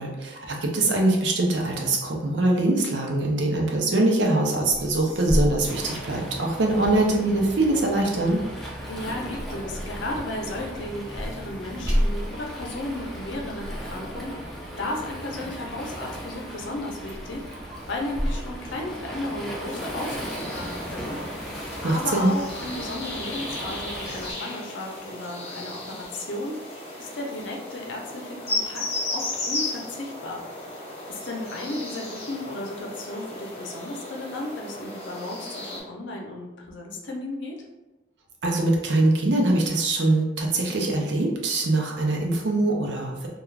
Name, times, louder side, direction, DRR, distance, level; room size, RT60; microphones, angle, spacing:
voice 1, 0.0-8.4 21.8-22.3 38.4-43.3, right 2 dB, 75° right, 0 dB, 0.6 m, -23 dB
sound 1, 4.7-6.8 7.2-15.9 16.4-16.8 17.1-19.6 20.0-21.0, equal, 20° right, 0.8 m, -32 dB
Waves surf, 5.7-24.3, equal, ahead, 0.4 m, -37 dB
voice 2, 8.9-21.1 21.8-28.8 29.1-30.4 31.1-37.6, left 2 dB, 80° left, 0 dB, 0.6 m, -34 dB
sound 2, 19.7-35.8, left 2 dB, 35° left, 0.7 m, -35 dB
2.3 x 2.3 x 3.1 m, 1.0 s
head